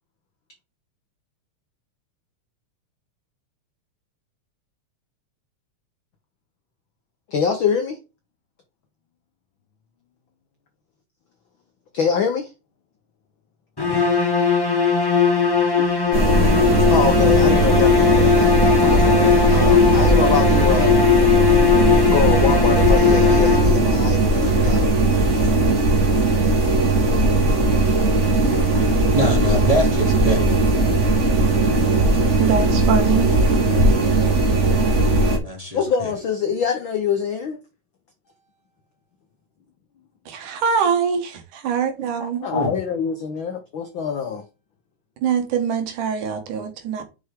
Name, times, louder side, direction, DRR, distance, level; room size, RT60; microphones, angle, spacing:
voice 1, 7.3-8.0 11.9-12.5 15.8-15.9 16.9-21.0 22.0-24.9 35.7-37.6 42.4-44.4, left 6 dB, 75° left, 1.1 m, -24 dB
sound 1, 13.8-24.0, left 6 dB, 25° left, 0.5 m, -18 dB
sound 2, 16.1-35.4, right 2 dB, 30° right, 1.6 m, -18 dB
voice 2, 29.1-30.6 32.3-32.4 35.4-36.1 42.5-42.7, equal, 10° right, 2.4 m, -24 dB
voice 3, 32.4-33.6 40.3-42.5 45.2-47.0, right 6 dB, 80° right, 3.0 m, -23 dB
6.6 x 6.2 x 3.6 m
omnidirectional pair, 3.5 m